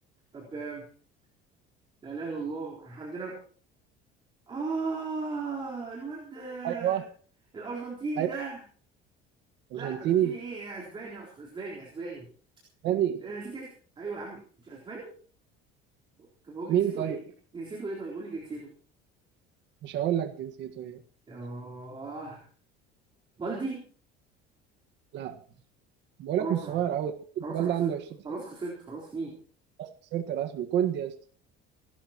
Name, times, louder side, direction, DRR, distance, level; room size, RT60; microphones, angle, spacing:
voice 1, 0.3-0.8 2.0-3.4 4.5-7.0 7.5-8.6 9.7-12.3 13.2-15.1 16.4-17.2 17.5-18.7 21.3-22.4 23.4-23.8 26.4-26.8 27.4-27.9 28.2-29.3, right 3 dB, 25° right, -3 dB, 4.0 m, -37 dB
voice 2, 6.6-7.0 8.2-8.3 9.7-10.3 12.8-13.2 16.7-17.2 19.8-21.0 25.1-25.4 26.2-28.0 29.8-31.2, right 10 dB, 55° right, 6 dB, 1.6 m, -28 dB
28.0 x 12.5 x 3.0 m, 0.43 s
cardioid pair, 145°, 21 cm